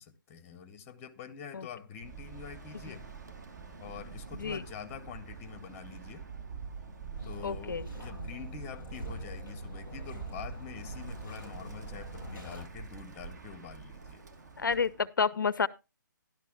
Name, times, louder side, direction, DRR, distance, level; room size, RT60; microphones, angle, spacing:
voice 1, 0.0-3.1 3.8-6.2 7.2-14.2, left 7 dB, 15° left, 0.6 m, -46 dB
sound 1, 2.0-12.8, right 8 dB, 25° right, 4.0 m, -51 dB
Bird, 2.0-15.1, right 5 dB, 55° right, 1.3 m, -46 dB
sound 2, 7.2-12.6, left 1 dB, 90° right, 6.7 m, -45 dB
voice 2, 7.4-7.9 14.6-15.7, left 5 dB, 70° left, 0.4 m, -29 dB
12.0 x 11.5 x 2.2 m
figure-of-eight pair, 135°, 11 cm